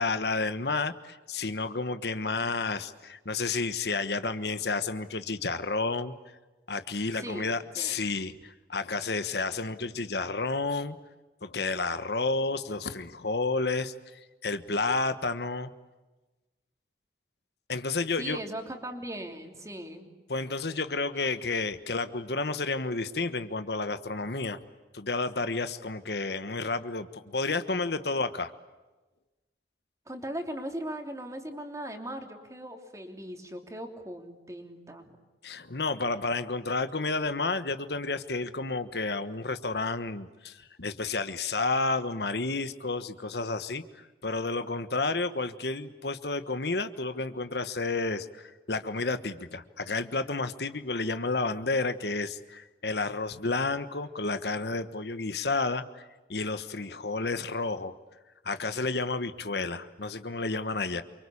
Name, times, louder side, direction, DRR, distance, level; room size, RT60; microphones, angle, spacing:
voice 1, 0.0-6.1 6.7-11.0 11.4-15.7 17.7-18.4 20.3-24.6 24.9-28.5 35.4-56.0 56.3-57.9 58.4-61.0, left 3 dB, 70° left, 11 dB, 1.3 m, -31 dB
voice 2, 7.1-8.0 18.2-20.1 30.1-35.2, right 1 dB, 20° right, 4 dB, 3.1 m, -39 dB
28.5 x 24.5 x 8.5 m, 1.1 s
head